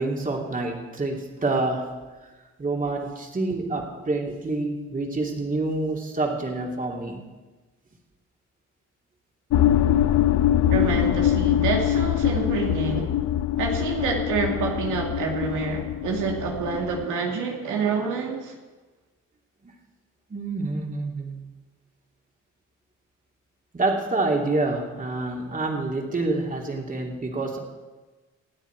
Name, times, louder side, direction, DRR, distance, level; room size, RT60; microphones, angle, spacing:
voice 1, 0.0-2.1 2.6-7.2 19.6-19.7 20.3-21.5 23.7-27.6, right 2 dB, 25° right, 0 dB, 3.0 m, -27 dB
sound 1, 9.5-17.0, left 11 dB, 65° left, 0.7 m, -23 dB
voice 2, 10.7-13.2 13.6-18.5, right 5 dB, 80° right, 0 dB, 2.5 m, -27 dB
26.0 x 9.2 x 4.8 m, 1.2 s
cardioid pair, 90°, 30 cm